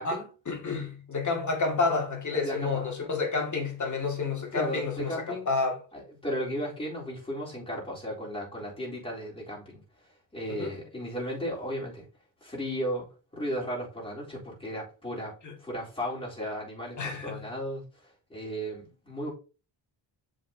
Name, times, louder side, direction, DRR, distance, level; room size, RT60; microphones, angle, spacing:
voice 1, 0.0-5.8 10.5-10.7 15.4-15.5 17.0-17.5, left 4 dB, 45° left, 2.4 m, -30 dB
voice 2, 2.3-2.8 4.5-5.5 5.9-9.8 10.3-12.1 12.4-13.1 13.3-19.3, equal, 15° left, 3.9 m, -35 dB
7.7 x 5.2 x 2.9 m
cardioid pair, 100°, 42 cm